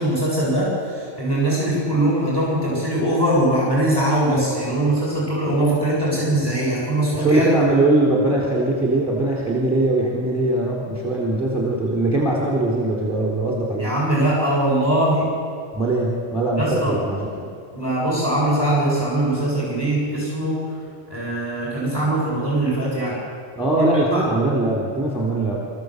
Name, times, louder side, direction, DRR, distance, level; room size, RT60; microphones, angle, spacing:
voice 1, 0.0-7.7 13.8-15.3 16.6-17.0 17.7-20.6 21.1-23.1 23.8-24.2, right 1 dB, 20° left, -6 dB, 8.1 m, -21 dB
voice 2, 7.1-13.9 15.7-17.3 23.6-25.6, right 2 dB, ahead, -3 dB, 3.8 m, -21 dB
27.0 x 14.5 x 8.1 m, 2.3 s
omnidirectional pair, 1.3 m